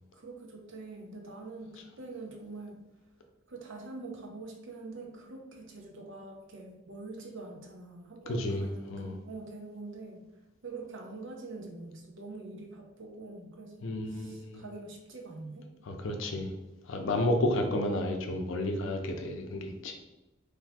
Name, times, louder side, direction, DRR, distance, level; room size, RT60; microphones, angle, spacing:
voice 1, 0.1-2.8 3.5-10.2 10.6-15.7, right 3 dB, 65° right, 1 dB, 0.7 m, -44 dB
voice 2, 8.3-9.1 13.8-14.6 15.9-16.5 16.9-20.0, left 1 dB, 70° left, 4 dB, 0.5 m, -31 dB
2.7 x 2.3 x 4.1 m, 1.0 s
head